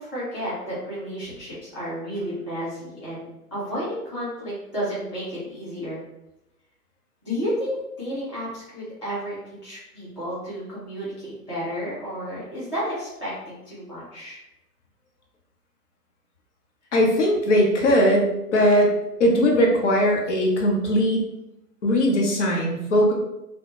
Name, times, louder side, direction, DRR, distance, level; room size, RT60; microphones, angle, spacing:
voice 1, 0.0-6.1 7.2-14.4, equal, 20° right, -11 dB, 0.3 m, -32 dB
voice 2, 16.9-21.3 21.8-23.1, equal, 50° left, 0 dB, 0.7 m, -20 dB
2.2 x 2.0 x 2.9 m, 0.91 s
figure-of-eight pair, 125°, 47 cm